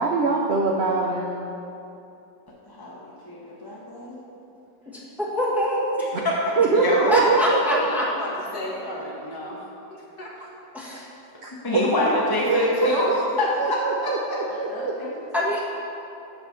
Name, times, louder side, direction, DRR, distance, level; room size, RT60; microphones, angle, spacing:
voice 1, 0.0-1.6 6.6-7.8 10.9-11.0 11.4-12.2 12.5-13.2 13.6-14.9, right 4 dB, 75° right, 0 dB, 0.5 m, -24 dB
voice 2, 2.7-4.2 6.2-6.4 6.7-7.1 11.6-13.1 13.4-14.1 14.5-15.1, left 1 dB, 20° left, -5 dB, 0.6 m, -25 dB
voice 3, 5.2-5.9 7.1-8.0 10.7-11.0 15.3-15.6, equal, ahead, -6 dB, 1.3 m, -23 dB
voice 4, 7.8-10.3, left 1 dB, 60° left, -2 dB, 1.8 m, -35 dB
6.8 x 6.3 x 5.8 m, 2.8 s
omnidirectional pair, 1.9 m